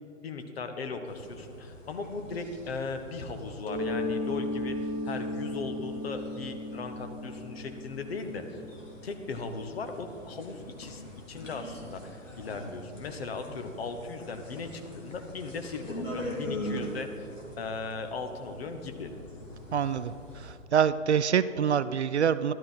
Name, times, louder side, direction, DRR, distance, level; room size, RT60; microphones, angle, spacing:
voice 1, 0.2-8.6 9.0-11.0 11.3-17.3 17.6-19.1, left 4 dB, 50° left, 6 dB, 1.2 m, -38 dB
sound 1, 1.0-20.6, equal, 70° left, 2.6 m, -43 dB
Mallet percussion, 3.6-9.2, left 1 dB, 15° left, 1.5 m, -35 dB
voice 2, 19.7-22.5, right 7 dB, 55° right, 14 dB, 0.5 m, -26 dB
13.0 x 12.0 x 4.3 m, 2.5 s
figure-of-eight pair, 125°, 40 cm